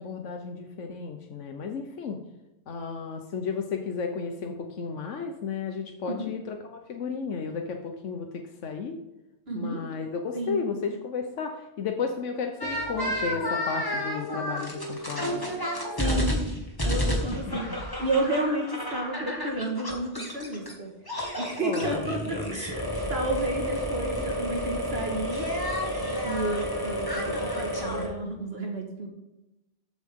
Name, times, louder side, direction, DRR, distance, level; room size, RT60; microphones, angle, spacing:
voice 1, 0.0-2.2 2.7-9.0 9.5-15.4 17.3-17.8 21.6-22.1, left 5 dB, 90° left, 4 dB, 1.3 m, -33 dB
voice 2, 9.5-9.8 10.3-10.6 16.0-16.4 16.8-17.7 18.0-20.9 21.3-25.5 26.2-29.1, right 2 dB, 60° right, 1 dB, 2.0 m, -31 dB
sound 1, 12.6-20.7 21.1-28.1, equal, 20° left, 1.9 m, -31 dB
14.5 x 8.3 x 3.7 m, 0.97 s
omnidirectional pair, 1.2 m